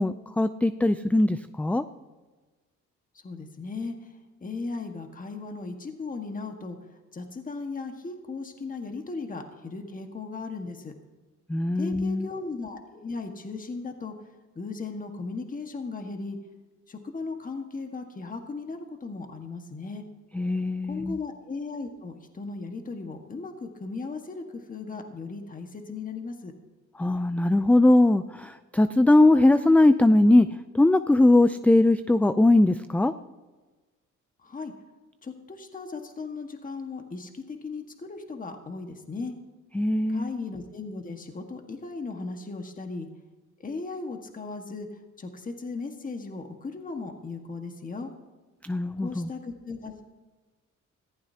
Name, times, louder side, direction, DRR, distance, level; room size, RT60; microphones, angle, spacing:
voice 1, 0.0-1.8 11.5-12.3 20.3-21.2 27.0-30.5 30.7-33.1 39.8-40.3 48.6-49.3, left 2 dB, 5° left, 11 dB, 0.4 m, -20 dB
voice 2, 3.2-4.1 4.4-6.8 7.1-10.9 11.7-14.1 14.5-16.4 16.9-20.0 20.9-26.5 34.4-34.7 35.2-39.3 40.1-43.1 43.6-44.9 45.2-48.1 49.0-50.0, left 3 dB, 25° left, 4 dB, 1.6 m, -37 dB
20.5 x 15.0 x 2.9 m, 1.3 s
cardioid pair, 90°, 30 cm